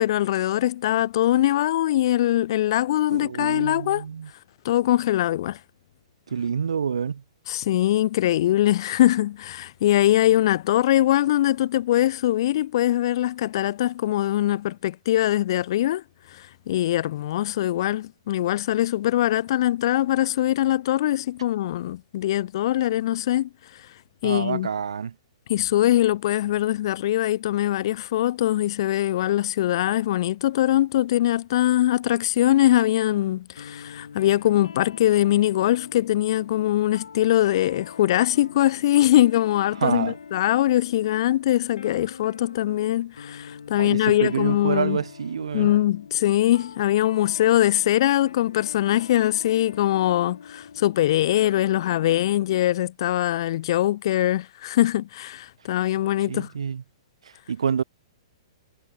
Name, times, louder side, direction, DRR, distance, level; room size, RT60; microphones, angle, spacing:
voice 1, 0.0-4.0 4.6-5.6 7.5-16.0 16.3-23.5 24.2-24.7 25.5-45.0 45.5-56.5, left 13 dB, 55° left, 0.5 m, -22 dB
voice 2, 3.1-4.3 6.3-7.2 24.2-25.1 39.8-40.2 43.8-45.7 56.3-56.8 57.5-57.8, right 7 dB, 85° right, 0.3 m, -27 dB
sound 1, 33.6-52.7, left 6 dB, 90° left, 3.4 m, -44 dB
hypercardioid pair, 135°, 3 cm